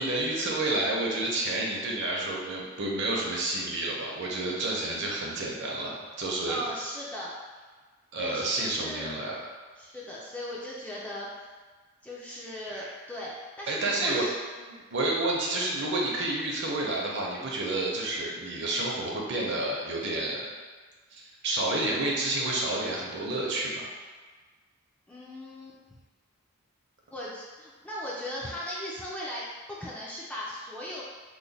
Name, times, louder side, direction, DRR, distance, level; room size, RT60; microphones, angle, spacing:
voice 1, 0.0-6.6 8.1-9.3 12.7-12.9 13.7-14.3 14.9-20.4 21.1-23.9, right 2 dB, 55° right, -3 dB, 0.6 m, -30 dB
voice 2, 6.5-7.4 8.2-9.1 9.8-11.5 12.0-14.3 14.6-14.9 15.5-15.6 25.1-26.0 27.1-31.0, left 1 dB, 5° left, -6 dB, 0.3 m, -38 dB
3.0 x 2.1 x 3.9 m, 1.4 s
head